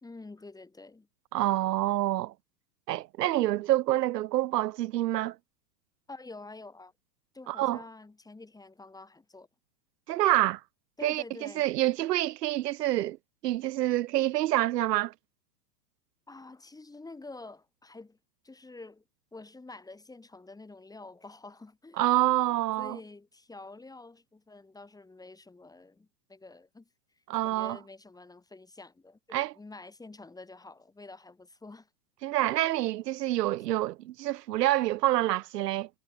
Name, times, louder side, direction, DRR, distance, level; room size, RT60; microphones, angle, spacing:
voice 1, 0.0-1.1 6.1-6.9 7.3-9.5 11.0-11.6 16.3-18.2 18.4-19.0 19.3-22.1 22.8-26.9 27.4-31.9 32.2-32.3, left 3 dB, 5° left, 3.7 m, -48 dB
voice 2, 1.3-2.3 2.9-5.4 7.5-7.8 10.1-10.6 11.0-13.2 13.4-15.1 22.0-23.0 27.3-27.8 29.3-29.5 32.2-35.9, right 15 dB, 75° right, 1.1 m, -27 dB
hypercardioid pair, 125°, 48 cm